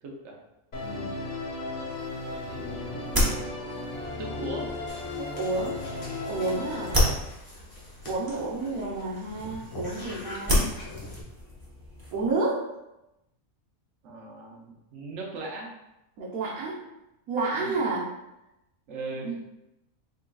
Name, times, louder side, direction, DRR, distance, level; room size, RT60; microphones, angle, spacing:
voice 1, 0.0-0.3 2.5-3.4 4.2-4.7 14.0-15.7 17.5-17.8 18.9-19.4, right 3 dB, 65° right, -2 dB, 1.0 m, -38 dB
Musical instrument, 0.7-7.1, left 2 dB, 50° left, 0.5 m, -35 dB
voice 2, 0.8-1.2 5.2-7.0 8.1-10.7 12.1-12.7 16.2-16.8 17.3-18.1, right 3 dB, 80° right, -7 dB, 1.2 m, -30 dB
sound 1, 2.0-12.3, equal, 20° right, 0.8 m, -32 dB
sound 2, 4.9-11.2, left 2 dB, 30° left, 0.8 m, -44 dB
3.8 x 3.7 x 2.2 m, 0.91 s
omnidirectional pair, 1.5 m